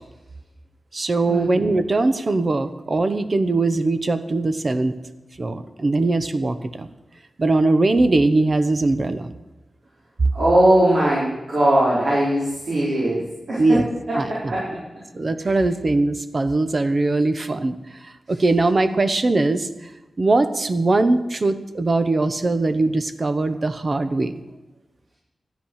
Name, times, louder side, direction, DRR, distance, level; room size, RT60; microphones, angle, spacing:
voice 1, 0.9-4.9 5.4-6.9 7.4-9.3 13.6-13.8 14.1-14.5 15.1-17.7 18.0-19.7 20.2-24.3, right 2 dB, 40° right, 10 dB, 0.9 m, -21 dB
voice 2, 10.3-13.2 13.5-13.8 14.1-14.8 15.4-15.5, right 1 dB, 70° right, -7 dB, 4.7 m, -20 dB
13.5 x 10.0 x 6.5 m, 1.0 s
wide cardioid pair, 120°, 0 cm